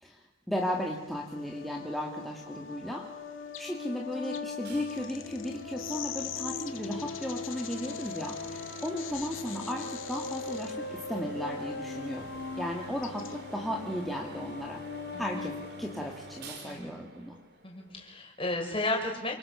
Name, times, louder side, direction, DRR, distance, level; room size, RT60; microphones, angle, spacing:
voice 1, 0.0-3.1 3.6-12.3 12.6-14.8 15.2-17.4, equal, ahead, -1 dB, 2.3 m, -35 dB
sound 1, 0.6-13.6, left 10 dB, 75° left, 1.9 m, -46 dB
sound 2, 1.2-16.6, left 4 dB, 55° left, 2.0 m, -41 dB
sound 3, 4.6-18.1, right 2 dB, 50° right, 3.1 m, -48 dB
voice 2, 15.1-15.5 16.6-16.9 17.6-19.4, left 2 dB, 25° left, 1 dB, 6.2 m, -33 dB
29.0 x 26.0 x 7.1 m, 0.88 s
head